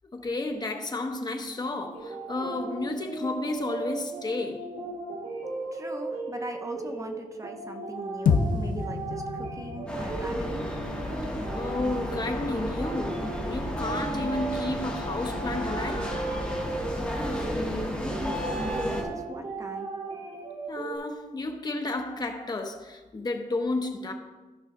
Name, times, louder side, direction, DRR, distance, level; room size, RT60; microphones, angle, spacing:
voice 1, 0.1-4.7 11.5-16.2 20.7-24.1, left 2 dB, 30° left, 0.8 m, -32 dB
sound 1, 1.9-21.0, right 3 dB, 60° right, 3.5 m, -37 dB
voice 2, 5.7-10.7 18.0-19.9, right 2 dB, 25° right, 0.6 m, -41 dB
sound 2, 8.3-12.6, left 5 dB, 85° left, 0.6 m, -30 dB
sound 3, 9.9-19.0, equal, 10° left, 1.7 m, -32 dB
14.0 x 5.7 x 3.6 m
wide cardioid pair, 180°, 13 cm